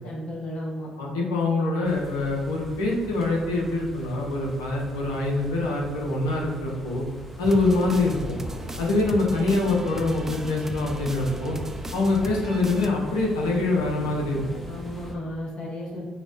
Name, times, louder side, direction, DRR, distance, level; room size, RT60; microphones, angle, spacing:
voice 1, 0.0-0.9 14.6-16.1, left 1 dB, 45° left, -4 dB, 1.1 m, -34 dB
voice 2, 1.0-7.0 7.4-8.4 8.8-11.6 11.9-14.4, left 2 dB, 75° left, -2 dB, 0.6 m, -24 dB
sound 1, 1.8-15.1, equal, 5° left, 0.7 m, -41 dB
sound 2, 7.4-12.9, right 1 dB, 15° right, 0.3 m, -36 dB
5.0 x 2.2 x 2.6 m, 1.4 s
figure-of-eight pair, 45°, 3 cm